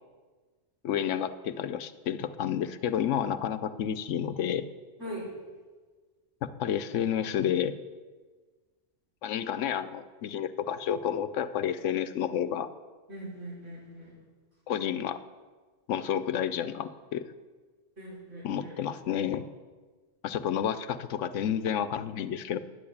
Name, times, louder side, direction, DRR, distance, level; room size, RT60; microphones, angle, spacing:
voice 1, 0.8-4.7 6.4-7.8 9.2-12.7 14.7-15.2 15.9-17.3 18.4-19.4 20.2-22.6, left 9 dB, 85° left, 13 dB, 1.0 m, -30 dB
voice 2, 13.1-14.1 18.0-18.8, right 1 dB, 85° right, -8 dB, 5.8 m, -41 dB
9.9 x 8.6 x 8.5 m, 1.4 s
omnidirectional pair, 1.2 m